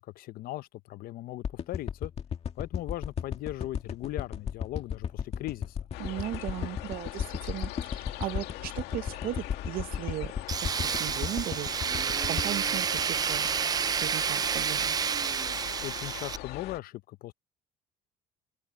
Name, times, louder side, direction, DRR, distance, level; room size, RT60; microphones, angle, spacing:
voice 1, 0.0-2.1 2.6-5.8 15.8-17.3, left 15 dB, 65° left, 0.7 m, -38 dB
sound 1, 1.4-13.8 14.2-14.3, left 7 dB, 40° left, 2.1 m, -35 dB
sound 2, 5.9-16.8, left 16 dB, 90° left, 2.1 m, -42 dB
voice 2, 6.0-10.3 10.6-11.8 12.3-13.5 14.0-14.9, right 14 dB, 65° right, 0.8 m, -37 dB
Tools, 10.5-16.4, right 7 dB, 25° right, 0.3 m, -29 dB
open air
cardioid pair, 130°, 16 cm